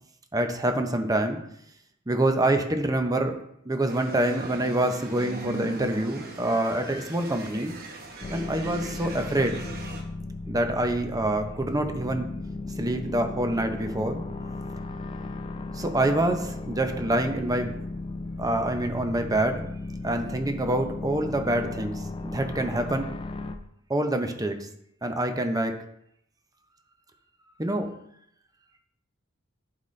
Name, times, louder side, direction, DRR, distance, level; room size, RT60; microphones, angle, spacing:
voice 1, 0.3-1.4 2.1-3.3 3.6-7.7 8.3-9.6 10.5-12.3 12.8-14.2 15.7-17.7 18.4-19.7 20.0-23.1 23.9-24.7 25.0-25.7 27.6-27.9, right 1 dB, 15° right, 6 dB, 0.7 m, -26 dB
sound 1, 3.9-10.0, right 3 dB, 50° right, 1.0 m, -40 dB
sound 2, 8.2-23.6, left 2 dB, 25° left, 0.5 m, -36 dB
11.0 x 4.0 x 3.2 m, 0.74 s
head